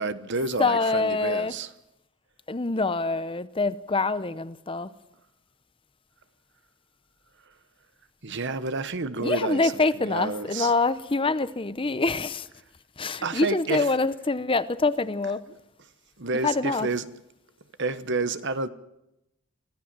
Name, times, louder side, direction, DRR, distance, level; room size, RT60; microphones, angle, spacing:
voice 1, 0.0-1.7 8.2-10.7 13.2-13.9 16.2-17.1 17.8-18.7, right 3 dB, 55° right, 1.1 m, -30 dB
voice 2, 0.6-1.5 2.5-4.9 9.2-12.5 13.0-15.4 16.4-16.9, left 3 dB, 25° left, 0.7 m, -25 dB
24.0 x 16.0 x 7.5 m
head